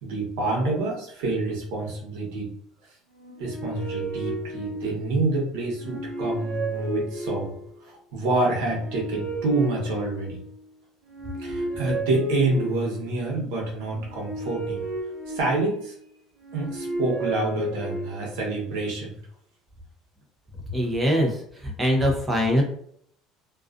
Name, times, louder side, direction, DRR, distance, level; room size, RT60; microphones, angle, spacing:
voice 1, 0.0-2.5 3.4-10.4 11.4-14.9 15.3-15.9 16.5-19.2, right 2 dB, 85° right, -1 dB, 1.0 m, -27 dB
sound 1, 3.1-5.2 5.7-7.7 8.4-10.6 11.0-13.1 13.8-15.9 16.4-18.4, right 1 dB, 60° right, 1.1 m, -33 dB
voice 2, 20.7-22.6, equal, 10° right, 0 dB, 0.5 m, -23 dB
2.4 x 2.3 x 2.4 m, 0.66 s
cardioid pair, 180°, 0 cm